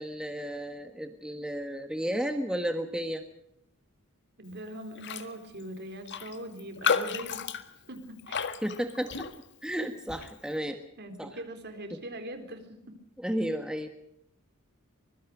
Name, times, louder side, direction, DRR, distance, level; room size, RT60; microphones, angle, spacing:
voice 1, 0.0-3.3 8.6-9.3 9.6-10.8 11.2-11.4 13.2-13.9, equal, 5° right, 6 dB, 1.4 m, -33 dB
voice 2, 4.4-7.4 7.9-8.4 11.0-12.9, right 1 dB, 50° right, 6 dB, 4.0 m, -41 dB
Raindrop, 5.0-5.3 5.6-5.7 6.1-9.6 10.1-10.4, left 6 dB, 55° left, 1.6 m, -32 dB
25.0 x 22.5 x 5.1 m, 0.77 s
head